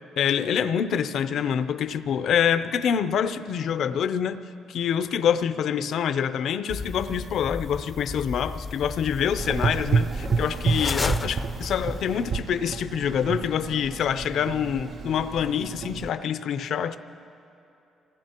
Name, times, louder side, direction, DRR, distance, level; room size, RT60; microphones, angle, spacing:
voice 1, 0.2-4.4 4.7-17.0, left 8 dB, 70° left, 11 dB, 0.5 m, -26 dB
sound 1, 6.7-12.3, left 3 dB, 25° left, 0.5 m, -34 dB
Gurgling / Engine, 9.4-16.1, right 5 dB, 50° right, 0.3 m, -29 dB
26.5 x 18.5 x 2.9 m, 2.8 s
cardioid pair, 90°, 0 cm